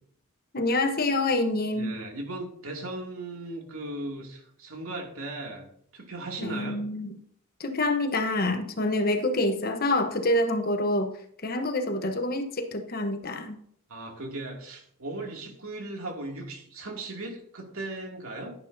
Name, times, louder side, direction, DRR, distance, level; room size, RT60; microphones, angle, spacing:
voice 1, 0.5-2.0 6.4-7.1 7.6-11.1 11.4-13.6, left 2 dB, 45° left, 7 dB, 1.0 m, -27 dB
voice 2, 1.7-6.8 13.9-18.5, right 2 dB, 75° right, 1 dB, 2.5 m, -37 dB
11.5 x 10.5 x 2.7 m, 0.65 s
head